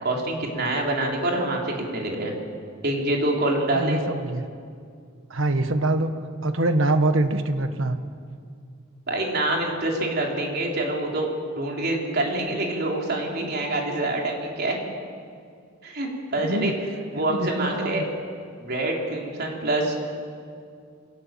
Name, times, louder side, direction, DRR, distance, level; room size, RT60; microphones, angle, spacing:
voice 1, 0.0-2.3 2.8-4.0 9.1-14.8 15.8-16.7 17.1-18.0 18.6-20.0, right 1 dB, 50° right, 0 dB, 3.9 m, -26 dB
voice 2, 3.7-4.4 5.3-6.1 6.4-8.0 16.4-16.7 17.2-18.0, right 2 dB, 70° right, 9 dB, 1.4 m, -24 dB
25.0 x 18.0 x 7.5 m, 2.2 s
head